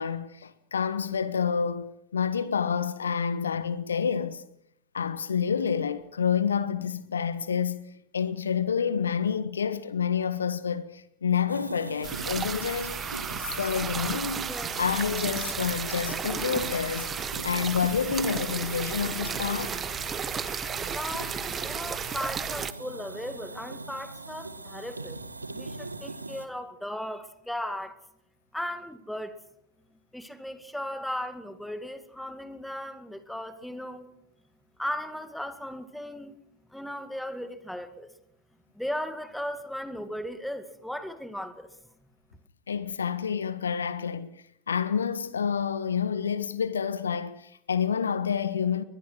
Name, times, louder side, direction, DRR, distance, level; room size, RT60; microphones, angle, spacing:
voice 1, 0.0-4.4 4.9-7.8 8.1-13.0 13.4-14.5 14.8-17.1 17.4-19.8 42.7-44.3 44.7-48.8, left 7 dB, 70° left, 1.3 m, -28 dB
sound 1, 11.5-26.5, right 2 dB, 80° right, 1.6 m, -42 dB
sound 2, 12.0-22.7, right 6 dB, 20° right, 0.9 m, -33 dB
voice 2, 20.9-25.2 25.5-28.0 28.5-29.4 30.1-34.1 34.8-36.4 36.7-38.1 38.8-41.7, equal, ahead, 2.1 m, -36 dB
22.5 x 21.0 x 6.2 m
figure-of-eight pair, 90°, 0 cm